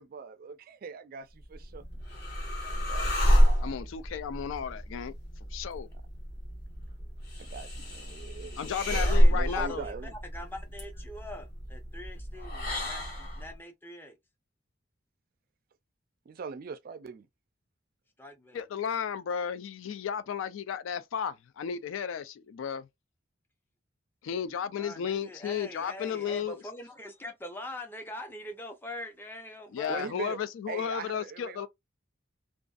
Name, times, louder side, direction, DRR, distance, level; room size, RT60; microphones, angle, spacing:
voice 1, 0.0-1.8 2.6-3.4 7.4-10.1 16.3-17.3 29.9-30.4 30.7-31.7, right 5 dB, 45° right, 0.3 m, -41 dB
sound 1, 1.4-13.5, equal, 55° left, 1.2 m, -29 dB
voice 2, 3.6-5.1 5.5-5.9 8.6-9.9 18.5-22.9 24.2-26.6 29.7-31.7, left 8 dB, 80° left, 0.3 m, -34 dB
voice 3, 9.0-9.9 10.3-14.2 18.2-18.6 24.8-30.1, left 1 dB, 10° left, 0.5 m, -43 dB
2.5 x 2.3 x 2.3 m
head